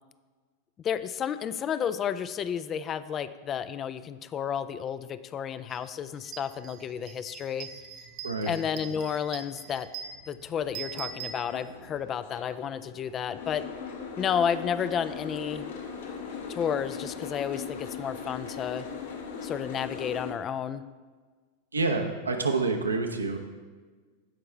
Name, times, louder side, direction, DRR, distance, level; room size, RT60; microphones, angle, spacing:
voice 1, 0.8-7.7 8.4-9.9 10.3-13.7 14.2-15.7 16.5-18.9 19.4-20.9, left 8 dB, 25° left, 14 dB, 0.4 m, -31 dB
sound 1, 5.7-5.8 6.2-12.0, right 8 dB, 40° right, 0.9 m, -43 dB
voice 2, 8.2-8.5 21.7-23.4, right 3 dB, 80° right, 4 dB, 0.9 m, -27 dB
Boat Water vehicle, 10.5-20.3, left 5 dB, 60° left, 1.2 m, -39 dB
16.0 x 5.5 x 3.3 m, 1.4 s
figure-of-eight pair, 90°, 0 cm